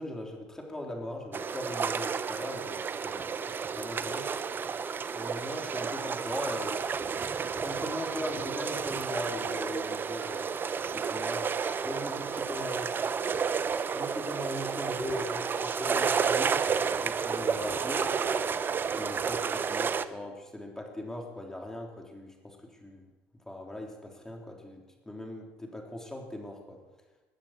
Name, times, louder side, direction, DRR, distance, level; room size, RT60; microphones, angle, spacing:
voice 1, 0.0-3.3 3.8-4.3 5.1-7.1 7.6-10.5 10.9-11.5 11.8-12.9 13.9-16.6 17.0-18.0 18.9-23.0 23.5-26.8, left 1 dB, 10° left, 0 dB, 3.6 m, -39 dB
sound 1, 1.3-20.1, right 6 dB, 35° right, 0.7 m, -31 dB
21.0 x 7.4 x 6.5 m, 1.2 s
supercardioid pair, 80°, 6 cm